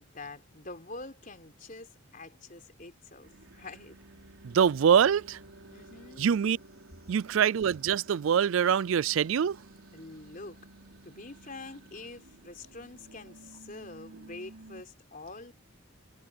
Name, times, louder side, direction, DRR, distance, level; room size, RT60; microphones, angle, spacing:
voice 1, 0.0-4.0 5.7-6.3 9.9-10.6 11.0-15.5, left 3 dB, 40° left, 3.8 m, -46 dB
sound 1, 3.2-14.8, right 2 dB, 85° right, 3.9 m, -53 dB
voice 2, 4.4-5.4 6.2-6.6 7.1-9.6, right 7 dB, 70° right, 0.4 m, -24 dB
head